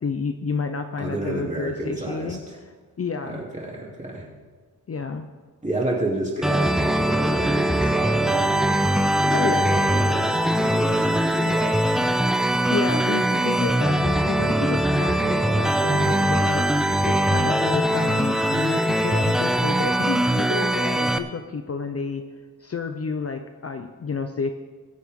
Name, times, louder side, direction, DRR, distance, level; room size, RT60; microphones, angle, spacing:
voice 1, 0.0-2.4 3.0-3.4 4.9-5.3 9.3-9.7 12.7-16.7 17.0-22.2 22.6-24.5, left 5 dB, 40° left, 6 dB, 0.7 m, -30 dB
voice 2, 1.0-2.6 3.3-4.2 5.6-8.5 9.2-11.7, right 2 dB, 20° right, -4 dB, 3.2 m, -30 dB
sound 1, 6.4-21.2, right 1 dB, ahead, 0.5 m, -21 dB
21.0 x 8.2 x 3.7 m, 1.4 s
wide cardioid pair, 115°, 38 cm